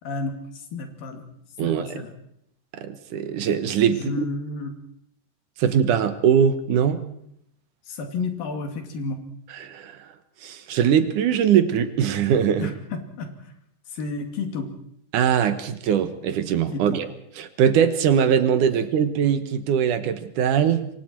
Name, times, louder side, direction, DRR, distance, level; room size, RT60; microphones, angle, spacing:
voice 1, 0.0-1.2 1.6-2.1 3.9-4.7 7.8-9.2 12.6-13.5 13.9-14.7 16.7-17.0, left 3 dB, 80° left, 5 dB, 4.4 m, -31 dB
voice 2, 2.7-4.2 5.6-7.0 9.6-10.1 10.4-12.7 15.1-17.1 17.4-20.9, right 8 dB, 70° right, 10 dB, 2.6 m, -21 dB
27.5 x 23.5 x 4.6 m, 0.71 s
omnidirectional pair, 4.0 m